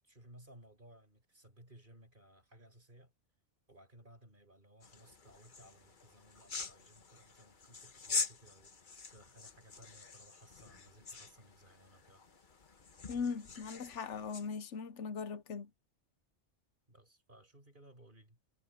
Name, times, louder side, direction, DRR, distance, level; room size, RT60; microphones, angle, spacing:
voice 1, 0.0-3.1 3.7-12.2 16.9-18.4, right 1 dB, 45° right, 5.4 m, -60 dB
sound 1, 4.8-14.5, left 4 dB, 45° left, 1.3 m, -44 dB
voice 2, 13.1-15.7, left 5 dB, 85° left, 1.2 m, -39 dB
omnidirectional pair, 1.2 m